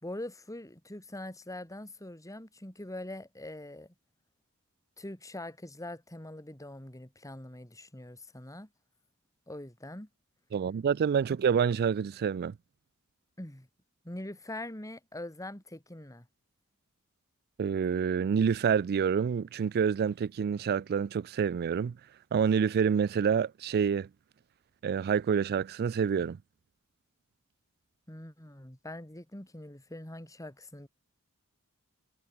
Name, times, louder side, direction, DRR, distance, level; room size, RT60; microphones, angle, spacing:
voice 1, 0.0-3.9 5.0-8.7 9.5-10.1 13.4-13.7 14.0-16.3 28.1-30.9, left 1 dB, 15° left, 3.1 m, -43 dB
voice 2, 10.5-12.5 17.6-22.0 22.3-24.1 24.8-26.4, right 7 dB, 45° right, 0.3 m, -27 dB
head